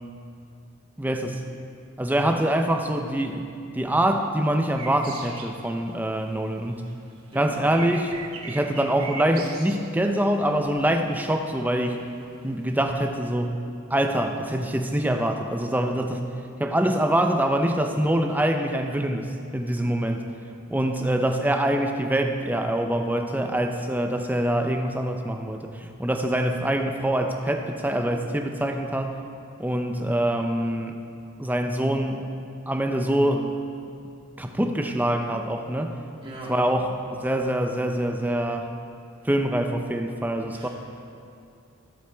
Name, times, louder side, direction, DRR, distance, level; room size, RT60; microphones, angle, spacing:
voice 1, 1.0-1.4 2.0-3.5 3.7-6.8 7.3-8.2 8.4-12.0 12.4-13.6 13.9-16.3 16.6-20.3 20.7-29.1 29.6-31.0 31.4-32.3 32.7-33.6 34.4-35.9 36.5-38.7 39.2-40.7, right 1 dB, 10° right, 5 dB, 0.5 m, -25 dB
sound 1, 4.8-6.4 6.7-11.1 11.7-11.8 12.3-13.1, right 4 dB, 90° right, 1.2 m, -40 dB
voice 2, 7.3-7.6 36.2-36.5 40.5-40.7, right 2 dB, 25° right, -6 dB, 2.5 m, -40 dB
16.5 x 8.1 x 3.4 m, 2.5 s
head